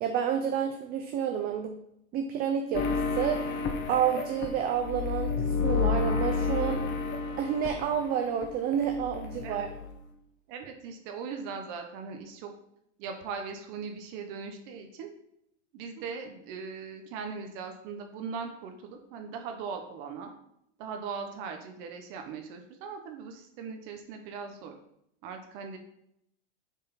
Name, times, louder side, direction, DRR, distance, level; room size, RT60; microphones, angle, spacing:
voice 1, 0.0-1.7 2.1-3.5 3.9-6.8 7.4-9.6, right 8 dB, 25° right, 4 dB, 0.5 m, -29 dB
sound 1, 2.7-8.5 8.7-9.9, left 4 dB, 30° left, 0.9 m, -31 dB
voice 2, 10.5-12.5 13.0-15.1 15.7-20.3 20.8-24.7 25.2-25.8, right 5 dB, 45° right, 5 dB, 0.9 m, -39 dB
7.1 x 3.8 x 4.1 m, 0.77 s
supercardioid pair, 130°, 36 cm